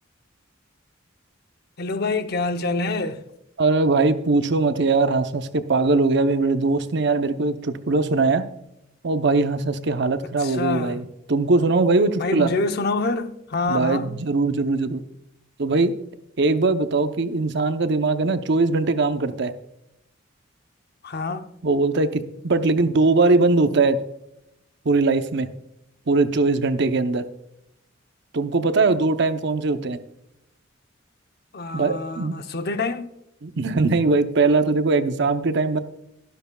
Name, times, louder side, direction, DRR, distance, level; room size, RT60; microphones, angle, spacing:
voice 1, 1.8-3.2 10.4-11.0 12.2-14.1 21.0-21.5 31.5-33.1, left 3 dB, 55° left, 0.8 m, -26 dB
voice 2, 3.6-8.4 9.0-12.5 13.7-15.0 15.6-15.9 16.4-19.5 21.6-24.0 24.8-25.5 26.1-27.2 28.3-30.0 31.7-32.3 33.4-35.8, right 3 dB, 60° right, 0.7 m, -21 dB
12.5 x 12.0 x 2.3 m
head